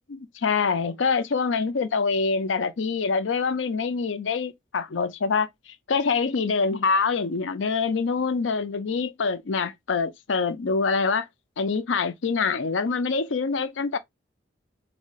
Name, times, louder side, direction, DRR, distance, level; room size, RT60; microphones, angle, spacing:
voice 1, 0.1-5.5 5.9-11.3 11.6-14.0, left 4 dB, 85° left, 0.6 m, -25 dB
4.2 x 2.7 x 2.4 m
head